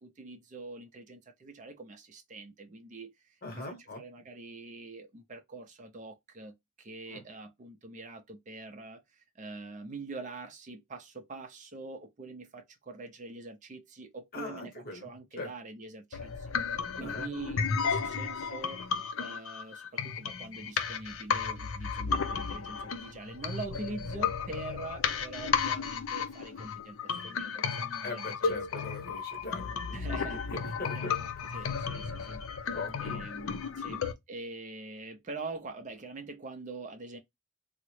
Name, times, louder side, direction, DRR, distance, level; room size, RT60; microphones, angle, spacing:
voice 1, 0.0-3.1 3.5-6.5 6.8-9.0 9.4-16.3 17.0-18.8 19.2-27.0 27.2-28.7 29.9-30.5 30.9-32.4 33.0-34.0 34.3-37.2, right 3 dB, 35° right, 0.4 m, -44 dB
voice 2, 3.4-4.0 7.1-7.2 14.3-15.1 15.4-15.5 17.0-17.3 28.0-31.2 32.7-33.3 33.9-34.0, left 2 dB, 40° left, 0.9 m, -40 dB
sound 1, 16.1-34.1, left 6 dB, 65° left, 0.5 m, -33 dB
3.6 x 2.0 x 3.1 m
head